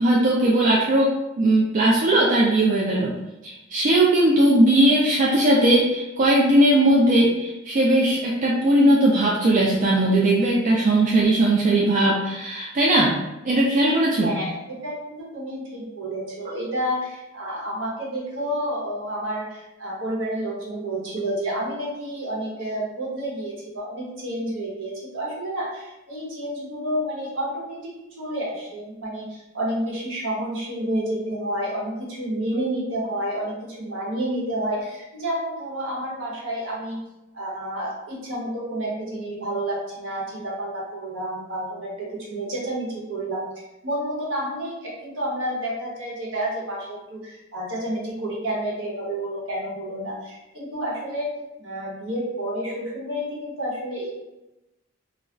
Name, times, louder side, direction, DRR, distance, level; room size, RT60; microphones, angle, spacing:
voice 1, 0.0-3.1 3.4-13.2 13.4-14.3, right 1 dB, 40° right, -4 dB, 0.3 m, -19 dB
voice 2, 14.2-37.0 37.3-43.4 43.8-51.3 51.6-54.1, right 1 dB, 70° right, -5 dB, 1.0 m, -30 dB
2.3 x 2.0 x 3.7 m, 0.97 s
head